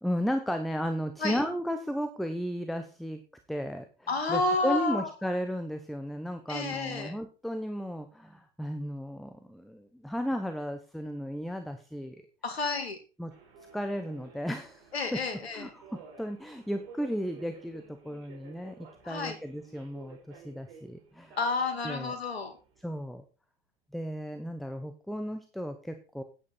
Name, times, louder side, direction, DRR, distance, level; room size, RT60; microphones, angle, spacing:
voice 1, 0.0-3.2 3.5-12.2 13.2-13.3 13.7-15.2 15.5-21.4 21.8-22.1 22.8-23.2 23.9-26.2, equal, ahead, 7 dB, 0.9 m, -34 dB
voice 2, 4.1-5.1 6.5-7.1 12.4-13.0 14.9-15.7 19.0-19.4 21.4-22.5, left 3 dB, 80° left, 7 dB, 2.4 m, -30 dB
Subway metro underground, 13.3-23.0, right 5 dB, 55° right, 4.4 m, -53 dB
9.6 x 8.9 x 4.2 m, 0.33 s
figure-of-eight pair, 90°, 31 cm